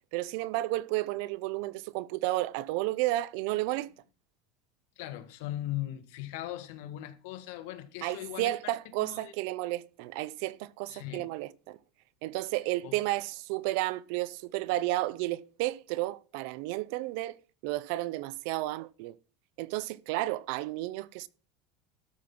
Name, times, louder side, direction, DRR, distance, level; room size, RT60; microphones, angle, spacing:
voice 1, 0.1-3.9 8.0-11.8 12.2-17.4 17.6-19.1 19.6-21.3, right 17 dB, 70° right, 0.6 m, -32 dB
voice 2, 5.0-9.3 10.9-11.3 12.8-13.0, left 14 dB, 75° left, 1.6 m, -39 dB
12.5 x 5.4 x 6.0 m
supercardioid pair, 130°, 0 cm